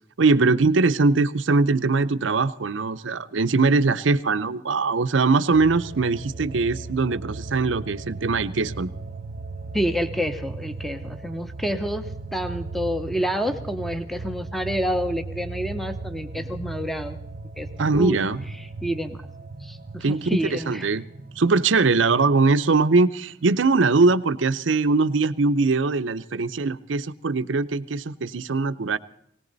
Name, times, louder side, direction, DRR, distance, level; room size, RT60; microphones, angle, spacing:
voice 1, 0.2-8.9 17.8-18.4 20.0-21.0 21.4-29.0, right 3 dB, 85° right, 12 dB, 0.7 m, -21 dB
sound 1, 5.5-23.0 23.4-23.5, right 3 dB, 45° right, 0.6 m, -37 dB
voice 2, 9.7-17.2 17.6-18.2 18.8-19.2 19.6-20.9, equal, ahead, 8 dB, 0.8 m, -28 dB
19.5 x 18.5 x 4.0 m, 0.77 s
head